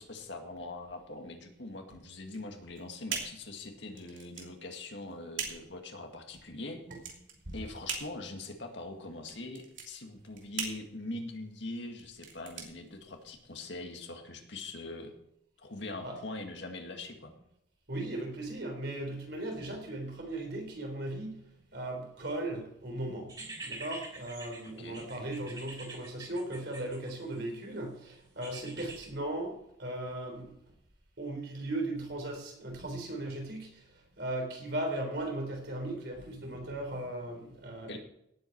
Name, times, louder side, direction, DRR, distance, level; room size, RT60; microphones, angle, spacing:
voice 1, 0.0-6.8 7.5-15.1 15.6-17.3 24.6-25.1 37.9-38.0, left 2 dB, 70° left, 4 dB, 2.0 m, -42 dB
sound 1, 2.2-13.6, right 6 dB, 80° right, 3.0 m, -42 dB
voice 2, 17.9-23.4 23.6-30.6 31.2-33.9 34.2-38.0, right 1 dB, 60° right, 3 dB, 3.8 m, -37 dB
sound 2, 23.3-27.5 28.4-29.1, right 2 dB, 20° right, 3.1 m, -45 dB
17.5 x 8.3 x 4.6 m, 0.78 s
head